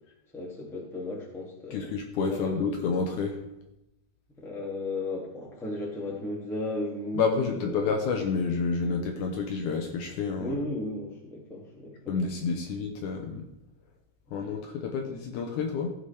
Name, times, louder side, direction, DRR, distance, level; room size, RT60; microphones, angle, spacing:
voice 1, 0.3-2.0 2.3-2.7 4.4-7.9 10.4-12.2 14.3-14.4 14.9-15.0 15.3-15.4, left 2 dB, ahead, -3 dB, 0.9 m, -35 dB
voice 2, 1.7-3.4 7.2-10.6 12.1-13.5 14.3-15.9, left 5 dB, 70° left, 3 dB, 2.0 m, -29 dB
16.0 x 5.6 x 3.3 m, 0.87 s
omnidirectional pair, 4.1 m